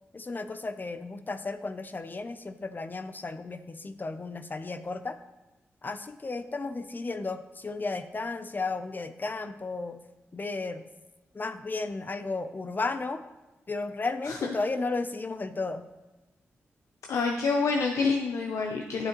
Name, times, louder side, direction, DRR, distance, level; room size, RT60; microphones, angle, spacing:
voice 1, 0.1-5.2 5.8-10.0 10.3-10.8 11.3-13.2 13.7-15.9, left 3 dB, 40° left, 10 dB, 0.5 m, -34 dB
voice 2, 17.1-19.1, left 4 dB, 85° left, 3 dB, 0.5 m, -27 dB
10.5 x 6.3 x 3.0 m, 1.1 s
cardioid pair, 55°, 5 cm